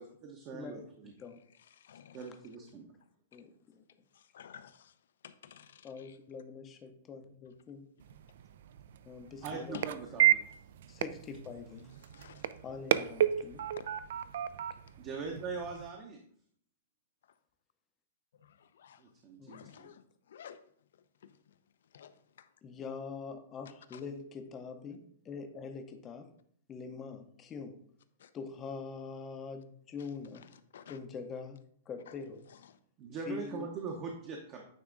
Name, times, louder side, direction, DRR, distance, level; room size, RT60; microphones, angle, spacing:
voice 1, 0.0-1.1 2.1-2.9 9.4-10.4 15.0-16.2 19.2-19.9 33.0-34.6, right 4 dB, 25° right, 0.7 m, -41 dB
voice 2, 1.5-2.3 3.3-3.5 4.1-5.0 5.2-6.2 9.7-9.9 12.1-12.5 13.8-13.9 14.9-15.0 18.3-19.0 19.4-20.6 20.9-21.6 21.9-22.5 23.9-24.0 28.2-28.3 30.0-30.1 30.3-31.0 32.1-32.2 32.5-32.8, left 8 dB, 70° left, 0.5 m, -53 dB
voice 3, 3.3-3.8 5.8-7.9 9.0-9.8 10.9-11.9 12.6-13.6 19.4-19.6 22.6-26.3 26.7-27.8 28.3-30.4 30.9-32.5 33.3-33.7, left 5 dB, 15° left, 0.6 m, -44 dB
sound 1, 8.0-15.9, right 11 dB, 55° right, 0.4 m, -33 dB
9.3 x 3.5 x 3.8 m
hypercardioid pair, 170°, 0 cm